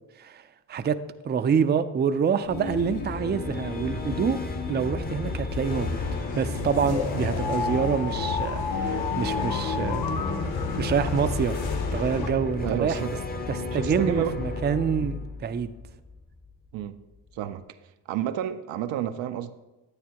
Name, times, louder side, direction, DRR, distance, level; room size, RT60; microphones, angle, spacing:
voice 1, 1.2-4.4 4.7-6.0 6.4-10.1 10.8-13.0 13.5-15.7, right 6 dB, 25° right, 0.4 m, -26 dB
sound 1, 2.5-15.4, left 3 dB, 80° left, 1.4 m, -38 dB
sound 2, 2.5-16.5, left 3 dB, 20° left, 0.7 m, -34 dB
sound 3, 5.7-12.3, left 5 dB, 55° left, 0.9 m, -31 dB
voice 2, 12.6-13.2 13.7-14.4 16.7-17.0 17.3-17.6 18.1-19.5, right 11 dB, 80° right, 0.6 m, -30 dB
9.6 x 9.1 x 2.9 m
cardioid pair, 65°, 45 cm